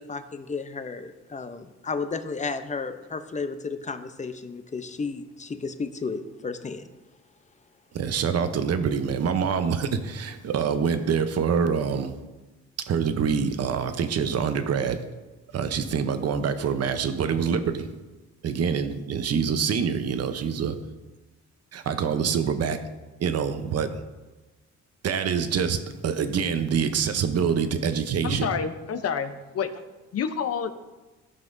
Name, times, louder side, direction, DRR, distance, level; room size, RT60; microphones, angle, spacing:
voice 1, 0.0-6.8, left 4 dB, 25° left, 10 dB, 0.7 m, -33 dB
voice 2, 7.9-12.1 12.9-15.0 15.5-17.9 18.4-20.7 21.7-22.8 23.2-23.9 25.0-28.5, right 6 dB, 55° right, 9 dB, 0.9 m, -25 dB
voice 3, 28.2-29.7 30.1-30.7, left 7 dB, 55° left, 10 dB, 0.8 m, -28 dB
14.5 x 5.8 x 2.7 m, 1.2 s
cardioid pair, 90°, 30 cm